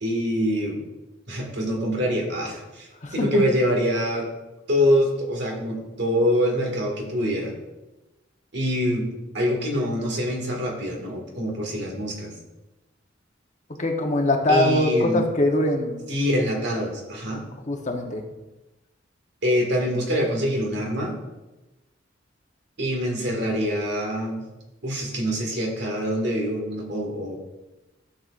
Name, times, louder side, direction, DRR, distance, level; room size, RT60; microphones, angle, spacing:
voice 1, 0.0-0.8 1.3-4.3 4.7-7.5 8.5-9.1 9.3-12.3 14.5-15.3 16.1-17.4 19.4-21.2 22.8-24.5 24.8-27.4, equal, 65° right, 0 dB, 2.0 m, -25 dB
voice 2, 3.0-3.4 13.8-16.0 17.7-18.2, left 1 dB, 40° left, 3 dB, 1.0 m, -22 dB
12.5 x 7.1 x 2.5 m, 1.1 s
head